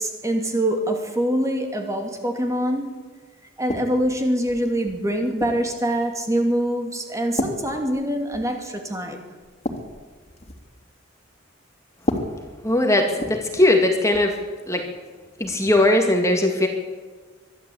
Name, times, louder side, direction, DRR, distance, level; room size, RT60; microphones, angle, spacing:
voice 1, 0.0-2.9 3.6-9.2, right 1 dB, 15° right, 3 dB, 2.6 m, -24 dB
sound 1, 3.7-4.2 4.9-5.7 6.4-6.6 7.4-8.6 8.9-9.0 9.4-10.7 11.9-13.8 14.1-14.3 15.4-15.6, left 1 dB, 30° left, 3.2 m, -31 dB
voice 2, 12.6-14.3 14.7-14.8 15.4-16.7, left 1 dB, 15° left, 3 dB, 2.2 m, -19 dB
22.5 x 13.0 x 8.7 m, 1.4 s
head